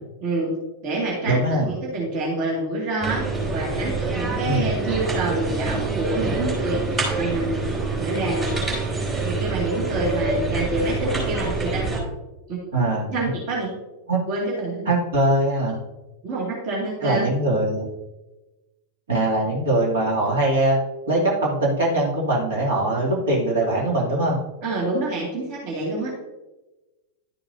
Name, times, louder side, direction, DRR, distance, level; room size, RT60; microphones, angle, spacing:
voice 1, 0.2-0.5 0.8-3.2 3.5-7.6 8.0-8.6 9.2-11.9 12.5-12.7 13.1-13.7 14.3-14.8 16.2-17.3 24.6-26.1, right 2 dB, 45° right, -3 dB, 2.2 m, -27 dB
voice 2, 1.2-1.7 4.4-4.7 12.7-13.3 14.1-14.2 14.9-15.8 17.0-17.9 19.1-20.8 21.1-24.4, right 1 dB, 65° right, -4 dB, 2.5 m, -22 dB
sound 1, 3.0-12.0, right 3 dB, 25° right, 3.1 m, -26 dB
11.5 x 6.9 x 2.7 m, 1.1 s
figure-of-eight pair, 90°, 0 cm